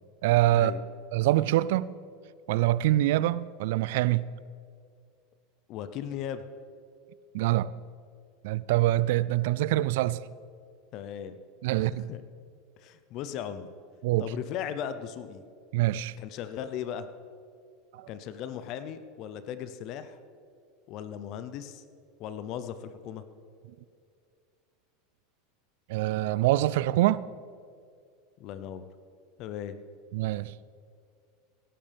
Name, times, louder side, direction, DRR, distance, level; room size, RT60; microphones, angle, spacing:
voice 1, 0.2-0.7 1.1-1.9 2.5-4.3 7.3-7.7 8.4-10.2 11.6-12.1 14.0-14.2 15.7-16.1 17.9-18.1 25.9-27.2 30.1-30.5, right 15 dB, 70° right, 0.4 m, -25 dB
voice 2, 5.7-6.4 10.9-11.4 11.8-11.9 12.1-12.2 12.8-13.7 14.2-15.4 16.2-17.1 18.1-20.2 20.9-21.8 22.2-23.2 28.4-28.8 29.4-29.8, left 9 dB, 55° left, 0.8 m, -37 dB
17.0 x 12.5 x 3.5 m
hypercardioid pair, 90°, 0 cm